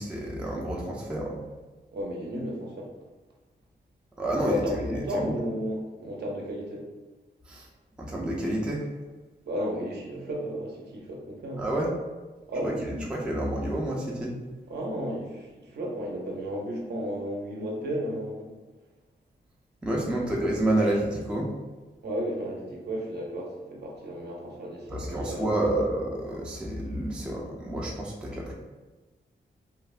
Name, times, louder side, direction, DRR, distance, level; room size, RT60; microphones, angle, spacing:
voice 1, 0.0-1.4 4.2-4.9 5.2-5.4 7.5-7.7 8.0-8.9 11.6-11.9 12.6-14.4 19.8-21.5 24.9-28.5, right 1 dB, 5° right, -2 dB, 0.3 m, -29 dB
voice 2, 1.9-2.9 4.5-6.9 9.4-11.6 12.5-13.1 14.7-18.5 20.3-20.5 22.0-25.5, equal, 65° right, -2 dB, 0.6 m, -33 dB
3.1 x 2.0 x 2.3 m, 1.2 s
wide cardioid pair, 160°, 18 cm